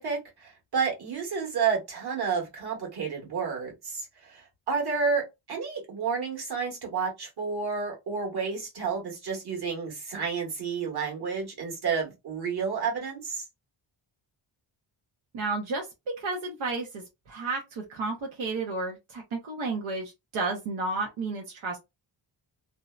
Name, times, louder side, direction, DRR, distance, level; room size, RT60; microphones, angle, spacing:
voice 1, 0.0-13.4, right 5 dB, 55° right, 1.4 m, -30 dB
voice 2, 15.3-15.9 16.2-21.8, right 3 dB, 85° right, 0.9 m, -32 dB
2.7 x 2.1 x 2.3 m
cardioid pair, 100°, 47 cm